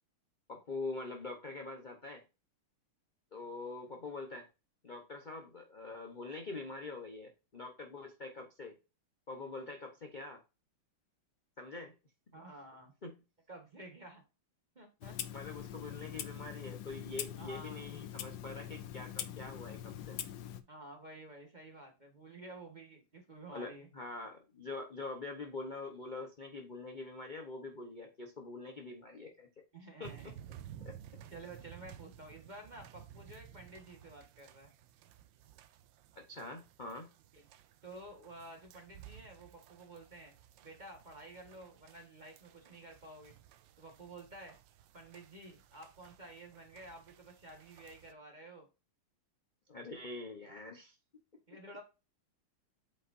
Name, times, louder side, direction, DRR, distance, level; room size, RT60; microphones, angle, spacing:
voice 1, 0.5-2.2 3.3-4.5 4.8-8.8 9.3-10.4 11.6-11.9 13.0-13.1 15.3-20.2 23.5-29.5 30.0-30.3 30.8-30.9 36.2-37.1 49.7-51.0, left 3 dB, 40° left, 2 dB, 0.6 m, -44 dB
voice 2, 12.3-12.9 13.5-14.2 14.7-15.2 17.4-17.8 20.7-23.9 29.7-30.3 31.3-34.7 37.3-37.5 37.8-40.3 40.6-43.3 43.8-44.6 44.9-48.7 51.5-51.8, right 2 dB, 25° right, 2 dB, 1.4 m, -51 dB
Clock, 15.0-20.6, left 10 dB, 65° left, 1.3 m, -43 dB
sound 1, 30.0-48.1, right 11 dB, 75° right, 1.2 m, -56 dB
8.3 x 5.4 x 2.6 m, 0.29 s
omnidirectional pair, 2.4 m